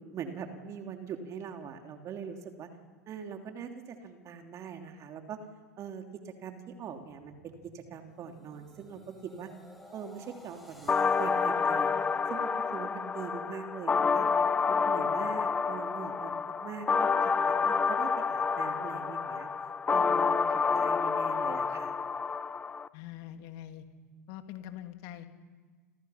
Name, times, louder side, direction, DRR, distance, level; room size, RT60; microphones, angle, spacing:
voice 1, 0.1-2.7 3.1-5.4 5.8-9.5 9.9-10.9 11.2-12.0 12.3-14.3 14.7-16.3 16.6-19.5 19.9-21.9, right 7 dB, 35° right, 4 dB, 2.9 m, -42 dB
sound 1, 6.9-13.1 13.6-13.9, equal, ahead, 6.8 m, -56 dB
sound 2, 10.9-22.9, left 5 dB, 15° left, 0.7 m, -28 dB
voice 2, 22.9-23.9 24.3-25.3, left 12 dB, 50° left, 7 dB, 2.6 m, -43 dB
29.5 x 28.5 x 5.9 m, 1.4 s
figure-of-eight pair, 90°, 9 cm